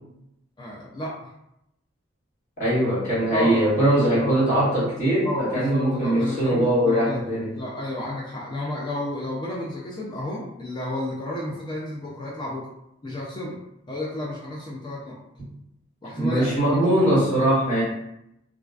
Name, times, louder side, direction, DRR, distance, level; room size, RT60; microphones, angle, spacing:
voice 1, 0.6-1.3 3.3-3.7 4.2-4.4 5.2-7.2 7.6-12.7 13.0-13.6 13.9-15.2 16.0-17.2, left 1 dB, 25° left, -5 dB, 0.4 m, -31 dB
voice 2, 2.6-7.5 16.1-17.8, right 1 dB, 40° left, -10 dB, 1.4 m, -21 dB
2.4 x 2.2 x 2.3 m, 0.82 s
head